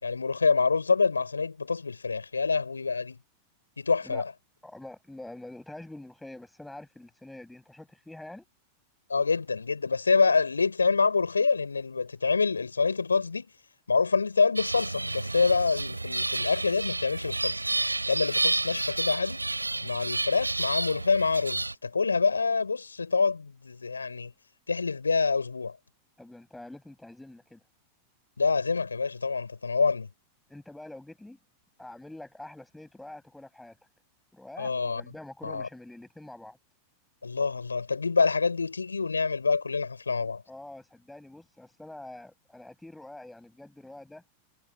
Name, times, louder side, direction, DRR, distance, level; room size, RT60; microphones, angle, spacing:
voice 1, 0.0-3.2 3.8-4.3 9.1-13.5 13.9-17.6 18.1-19.4 19.8-24.3 24.7-25.8 28.4-30.1 34.6-35.0 35.4-35.7 37.2-40.4, left 4 dB, 75° left, 4.4 m, -26 dB
voice 2, 4.6-8.5 26.2-27.6 30.5-31.4 31.8-33.8 34.3-36.6 40.5-44.2, left 1 dB, 5° left, 7.5 m, -45 dB
sound 1, 14.6-21.7, right 2 dB, 85° right, 5.9 m, -30 dB
figure-of-eight pair, 90°, 0 cm